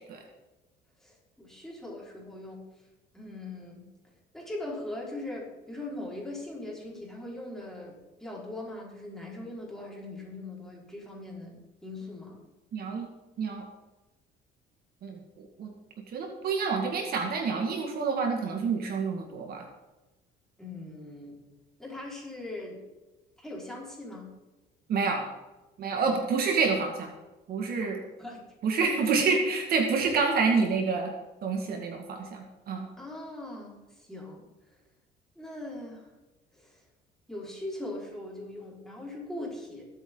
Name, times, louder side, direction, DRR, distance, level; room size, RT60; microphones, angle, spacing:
voice 1, 1.0-2.6 3.1-3.8 4.3-12.4 20.6-21.4 21.8-22.8 23.4-24.3 26.1-26.4 27.8-28.4 29.0-29.1 33.0-34.4 35.4-36.1 36.5-36.8 37.3-39.9, left 2 dB, ahead, -4 dB, 4.9 m, -40 dB
voice 2, 12.7-13.1 13.4-13.7 15.0-15.7 16.1-19.7 24.9-25.3 25.8-27.1 27.5-28.0 28.6-31.1 31.4-32.9, right 4 dB, 60° right, 2 dB, 2.0 m, -28 dB
20.5 x 8.4 x 3.9 m, 1.1 s
cardioid pair, 120°, 18 cm